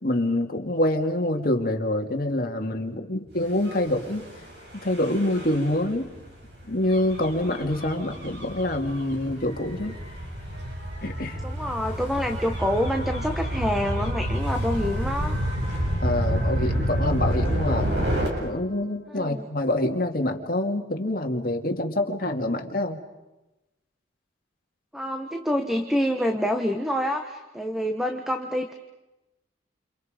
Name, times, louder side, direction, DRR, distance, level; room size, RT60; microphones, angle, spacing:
voice 1, 0.0-4.3 4.8-6.1 6.7-10.0 11.0-11.4 16.0-17.9 18.4-23.0, left 1 dB, 50° left, 3 dB, 2.4 m, -26 dB
Gull seagull / Waves surf / Siren, 3.5-18.3, equal, 60° right, 7.6 m, -29 dB
voice 2, 11.4-15.4 19.1-19.5 24.9-28.7, equal, ahead, 4 dB, 1.4 m, -27 dB
29.5 x 29.5 x 5.2 m, 1.0 s
head